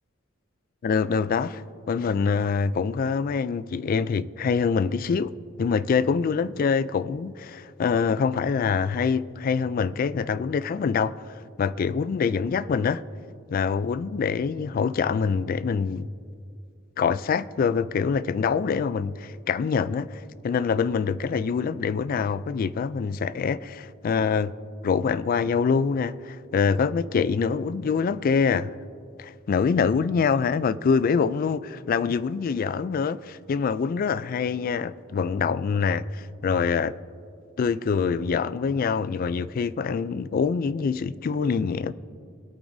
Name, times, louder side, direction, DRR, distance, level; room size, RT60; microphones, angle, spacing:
voice 1, 0.8-1.6 1.9-11.2 11.6-13.0 13.5-16.1 17.0-24.5 24.8-28.7 29.2-36.9 37.6-41.9, left 5 dB, 45° left, 0.3 m, -25 dB
23.0 x 8.6 x 2.7 m
head